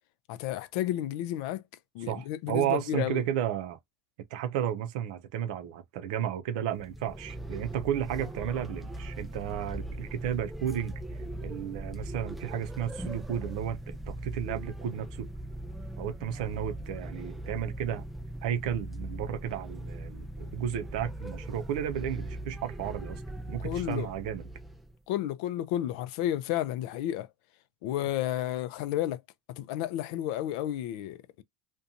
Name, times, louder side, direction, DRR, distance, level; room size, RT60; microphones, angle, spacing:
voice 1, 0.3-1.6 1.9-3.2 23.6-24.1 25.1-27.3 27.8-29.2 29.5-31.4, left 12 dB, 70° left, 0.4 m, -32 dB
voice 2, 2.1-3.8 4.3-10.9 11.4-15.3 16.0-18.0 18.4-23.2 23.5-24.5, right 10 dB, 85° right, 0.5 m, -33 dB
sound 1, 6.7-24.9, right 1 dB, ahead, 0.3 m, -40 dB
2.5 x 2.2 x 2.6 m
cardioid pair, 150°, 4 cm